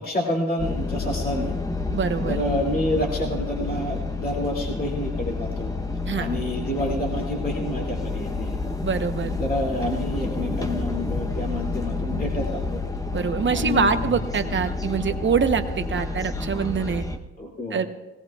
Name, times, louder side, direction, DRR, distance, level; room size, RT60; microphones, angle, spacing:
voice 1, 0.0-1.6 2.3-5.7 6.2-8.5 9.4-12.8 13.5-14.1 17.4-17.9, left 1 dB, 30° left, -1 dB, 2.5 m, -28 dB
sound 1, 0.6-17.2, left 3 dB, 10° left, 0.8 m, -29 dB
voice 2, 1.9-2.4 6.1-6.3 8.8-9.4 13.1-17.0 17.7-17.9, right 6 dB, 40° right, 8 dB, 0.9 m, -24 dB
18.0 x 17.5 x 2.3 m, 1.1 s
cardioid pair, 90°, 30 cm